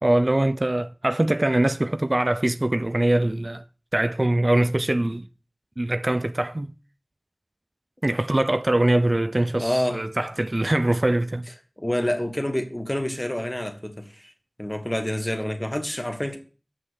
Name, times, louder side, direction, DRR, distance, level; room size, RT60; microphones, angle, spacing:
voice 1, 0.0-3.6 3.9-5.3 5.8-6.7 8.0-11.5, right 1 dB, 50° right, 0.4 m, -22 dB
voice 2, 9.6-10.0 11.8-14.3 14.6-16.4, left 1 dB, 20° left, 1.6 m, -27 dB
7.8 x 6.0 x 6.4 m
wide cardioid pair, 45°, 0 cm